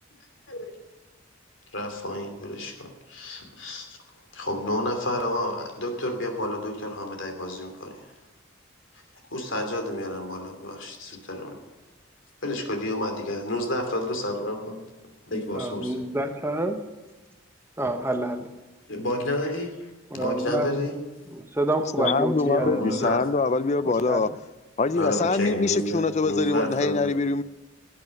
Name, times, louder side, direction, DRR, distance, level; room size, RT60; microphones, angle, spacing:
voice 1, 1.7-4.0 4.3-8.1 9.3-11.6 12.4-14.8 15.3-16.0 18.9-19.8 20.1-21.0 22.6-23.2 25.0-27.2, left 1 dB, 70° left, 4 dB, 2.8 m, -30 dB
voice 2, 15.5-16.8 17.8-18.5 20.1-20.7 21.3-23.1 23.8-24.3, right 1 dB, 10° right, 6 dB, 0.9 m, -28 dB
voice 3, 22.0-24.3 24.8-27.4, left 3 dB, 35° left, 16 dB, 0.5 m, -24 dB
17.5 x 8.5 x 6.5 m, 1.2 s
head